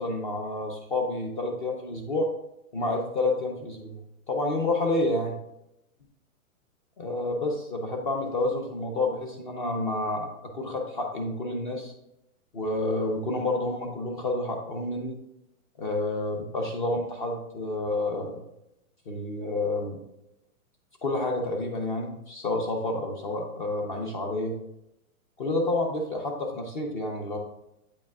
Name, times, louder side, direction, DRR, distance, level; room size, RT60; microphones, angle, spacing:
voice 1, 0.0-2.3 2.7-4.0 4.3-5.4 7.0-11.9 12.5-15.2 15.8-18.4 19.1-20.0 21.0-24.6 25.4-27.4, left 2 dB, 35° left, 2 dB, 0.7 m, -29 dB
8.4 x 5.2 x 2.3 m, 0.84 s
hypercardioid pair, 165°, 42 cm